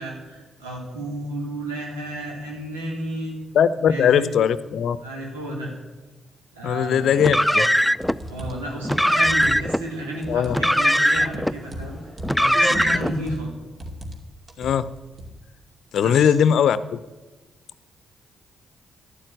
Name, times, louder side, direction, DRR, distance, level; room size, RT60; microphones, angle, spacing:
voice 1, 0.0-3.4 3.8-4.3 5.0-5.7 6.5-7.2 8.2-12.0 12.4-13.5 16.0-16.3, right 1 dB, 90° right, -2 dB, 3.5 m, -32 dB
voice 2, 3.5-5.0 6.6-7.7 10.3-10.6 14.6-14.8 15.9-17.1, left 8 dB, 65° left, 16 dB, 0.6 m, -20 dB
Car, 7.2-8.2 8.8-9.8 10.5-11.5 12.2-13.2, equal, ahead, 0.4 m, -20 dB
sound 1, 8.0-8.7 9.2-9.9 10.2-10.7 11.1-12.4 12.7-13.5 13.8-14.2 14.5-15.4, equal, 45° right, 2.5 m, -37 dB
12.0 x 11.5 x 9.0 m, 1.2 s
hypercardioid pair, 40°, 0 cm